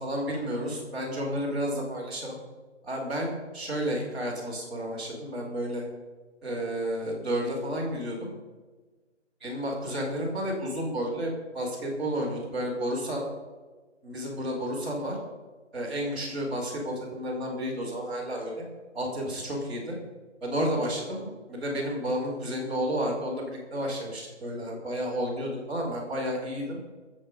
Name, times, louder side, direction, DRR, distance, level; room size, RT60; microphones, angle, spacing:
voice 1, 0.0-2.4 2.8-5.8 6.4-8.3 9.4-13.3 14.0-15.2 15.7-18.6 18.9-20.0 20.4-23.4 23.7-26.8, equal, ahead, -14 dB, 3.3 m, -31 dB
22.5 x 7.6 x 5.2 m, 1.3 s
hypercardioid pair, 175°, 36 cm